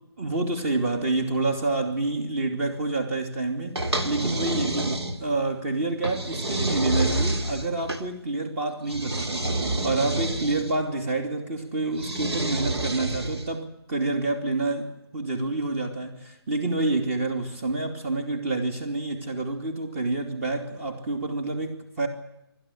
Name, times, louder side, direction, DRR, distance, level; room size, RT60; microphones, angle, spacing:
voice 1, 0.2-9.5 9.8-22.1, right 2 dB, 30° right, 6 dB, 2.8 m, -28 dB
sound 1, 3.8-5.4 6.0-8.0 8.9-10.8 11.9-13.5, right 2 dB, 85° right, 3.0 m, -28 dB
28.0 x 12.5 x 10.0 m, 0.85 s
hypercardioid pair, 160°, 13 cm